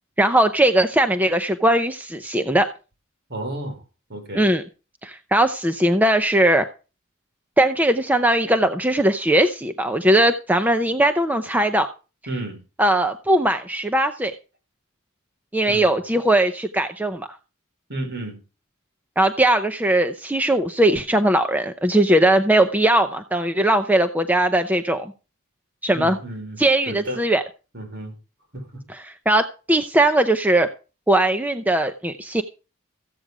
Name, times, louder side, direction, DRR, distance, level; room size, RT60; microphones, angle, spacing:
voice 1, 0.2-2.7 4.4-4.6 5.0-6.7 7.6-11.9 12.8-14.3 15.5-17.3 19.2-25.1 25.8-26.2 26.6-27.4 29.3-30.7 31.1-32.4, right 1 dB, 10° right, 0.7 m, -19 dB
voice 2, 3.3-3.8 4.1-4.5 12.3-12.6 15.7-15.8 17.9-18.4 25.9-26.6 26.9-27.2 27.7-28.2 28.5-28.8, right 1 dB, 55° right, 5.2 m, -32 dB
15.0 x 8.6 x 4.9 m
head